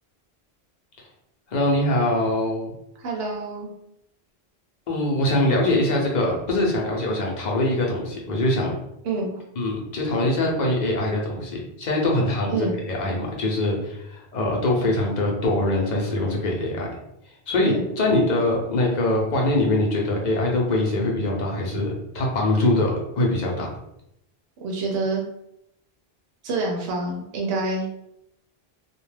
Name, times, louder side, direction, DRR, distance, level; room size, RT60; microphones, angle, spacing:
voice 1, 1.5-2.7 4.9-8.7 9.6-16.9 17.5-23.7, left 1 dB, 50° left, -1 dB, 0.7 m, -23 dB
voice 2, 3.0-3.7 9.0-9.3 12.5-12.7 17.6-17.8 24.6-25.2 26.4-27.9, right 3 dB, 75° right, -1 dB, 0.8 m, -27 dB
2.3 x 2.2 x 3.2 m, 0.82 s
omnidirectional pair, 1.1 m